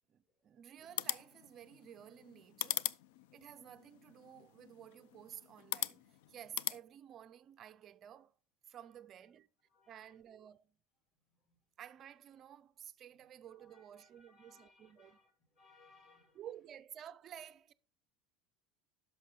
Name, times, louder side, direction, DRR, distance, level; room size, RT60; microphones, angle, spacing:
voice 1, 0.1-2.9 3.3-8.4 8.7-9.5 9.9-10.8 11.8-15.2 16.3-17.7, right 10 dB, 25° right, 0.4 m, -53 dB
sound 1, 0.8-6.8, left 14 dB, 85° left, 0.3 m, -42 dB
voice 2, 9.7-10.2 11.3-11.6 13.5-16.4, left 3 dB, 30° left, 2.9 m, -67 dB
10.5 x 6.2 x 3.7 m
cardioid pair, 180°, 0 cm